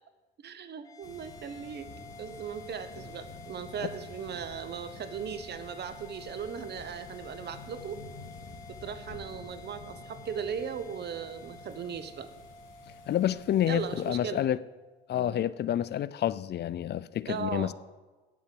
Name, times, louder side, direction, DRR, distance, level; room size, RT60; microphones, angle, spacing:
voice 1, 0.4-1.9 2.2-8.1 8.7-12.3 13.7-14.4 15.1-15.4 17.3-17.7, right 7 dB, 55° right, 1.0 m, -38 dB
sound 1, 0.8-15.4, left 2 dB, 15° left, 0.9 m, -50 dB
sound 2, 1.0-14.2, left 4 dB, 80° left, 2.3 m, -49 dB
voice 2, 13.1-14.6 15.1-17.7, left 11 dB, 55° left, 0.5 m, -28 dB
8.7 x 7.2 x 7.8 m
cardioid pair, 90°, 20 cm